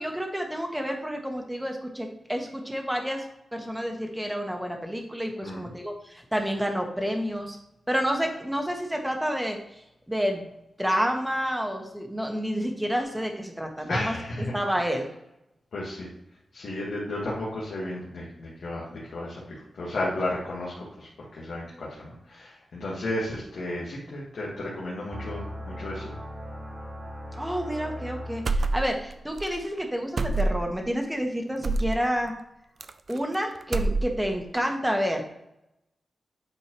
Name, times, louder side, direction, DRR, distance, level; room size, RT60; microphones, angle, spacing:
voice 1, 0.0-3.2 3.5-7.6 7.9-9.6 10.1-10.4 10.8-14.1 14.5-15.1 27.3-32.3 33.1-35.3, equal, 5° right, 3 dB, 1.3 m, -29 dB
voice 2, 13.9-14.6 15.7-16.1 16.5-26.1, left 1 dB, 80° left, -6 dB, 1.6 m, -33 dB
sound 1, 25.1-29.0, equal, 30° right, 1.6 m, -39 dB
sound 2, 28.4-29.1 29.4-29.5 30.2-30.8 31.6-32.0 32.8-33.3 33.6-34.4, right 2 dB, 55° right, 0.4 m, -26 dB
8.6 x 4.5 x 3.1 m, 0.84 s
cardioid pair, 80°, 0 cm